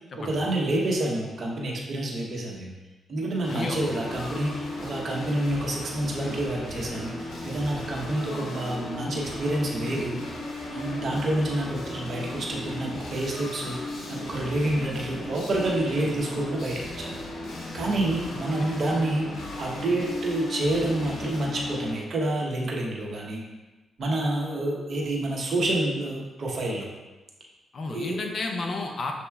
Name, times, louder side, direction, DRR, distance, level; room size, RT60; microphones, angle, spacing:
voice 1, 0.2-2.7 3.1-10.2 10.7-13.8 14.1-17.2 17.7-19.3 19.6-23.4 24.0-26.9 27.9-28.2, right 1 dB, 50° right, -2 dB, 0.9 m, -28 dB
sound 1, 3.4-21.9, left 1 dB, 85° left, 0.9 m, -36 dB
voice 2, 3.5-3.8 18.6-18.8 27.7-29.1, left 3 dB, 50° left, 2 dB, 0.6 m, -31 dB
6.7 x 2.9 x 2.3 m, 1.2 s
cardioid pair, 115°, 0 cm